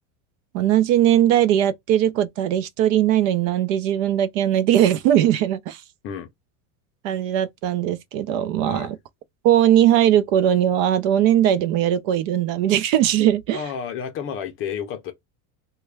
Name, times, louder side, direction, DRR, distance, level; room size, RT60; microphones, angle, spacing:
voice 1, 0.5-5.8 7.0-9.0 9.4-13.6, right 11 dB, 65° right, 0.6 m, -19 dB
voice 2, 13.5-15.1, left 7 dB, 30° left, 0.5 m, -31 dB
3.4 x 2.2 x 3.2 m
cardioid pair, 155°, 41 cm